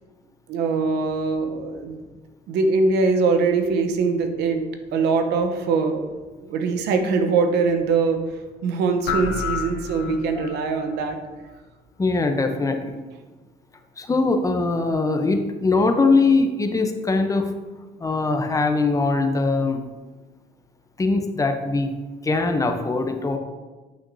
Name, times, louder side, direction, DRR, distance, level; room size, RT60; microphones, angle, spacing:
voice 1, 0.5-2.0 2.5-4.6 4.9-6.1 6.4-8.2 8.6-11.2, right 4 dB, 85° right, 6 dB, 0.9 m, -22 dB
sound 1, 9.1-10.6, left 5 dB, 85° left, 0.8 m, -29 dB
voice 2, 12.0-13.0 14.0-17.5 18.0-19.8 21.0-21.9 22.2-23.4, left 3 dB, 20° left, 5 dB, 0.7 m, -21 dB
8.9 x 5.9 x 2.7 m, 1.2 s
cardioid pair, 110°, 17 cm